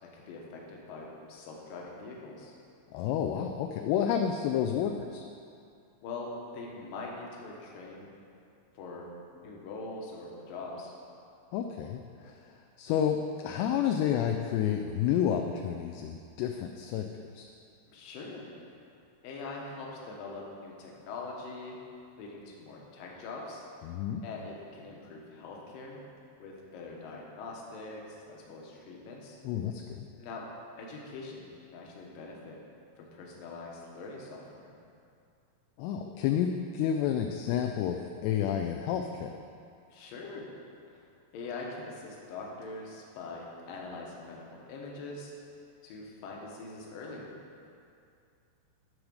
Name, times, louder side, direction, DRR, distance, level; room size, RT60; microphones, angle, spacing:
voice 1, 0.0-2.6 6.0-8.1 8.7-9.0 9.3-10.9 17.9-18.5 19.2-21.8 22.2-23.6 24.2-26.0 26.4-29.4 30.2-30.5 30.8-32.6 33.0-34.7 39.9-40.5 41.3-45.3 45.8-47.3, left 3 dB, 65° left, -2 dB, 2.7 m, -43 dB
voice 2, 2.9-5.2 11.5-12.4 12.8-17.1 17.3-17.5 23.8-24.2 29.4-30.1 35.8-39.3, left 9 dB, 85° left, 4 dB, 2.6 m, -30 dB
13.0 x 4.9 x 6.4 m, 2.4 s
omnidirectional pair, 5.0 m